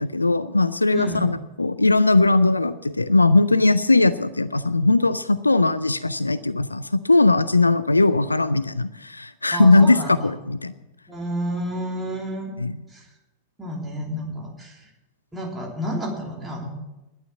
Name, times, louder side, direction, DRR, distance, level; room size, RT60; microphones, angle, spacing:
voice 1, 0.0-10.7 12.6-12.7, left 2 dB, 80° left, 15 dB, 0.4 m, -19 dB
voice 2, 0.9-1.3 9.5-10.2 11.1-12.5 12.9-13.1 13.6-14.9 15.3-16.7, equal, 10° right, -2 dB, 3.1 m, -30 dB
11.5 x 9.6 x 7.4 m, 0.98 s
figure-of-eight pair, 90°, 0 cm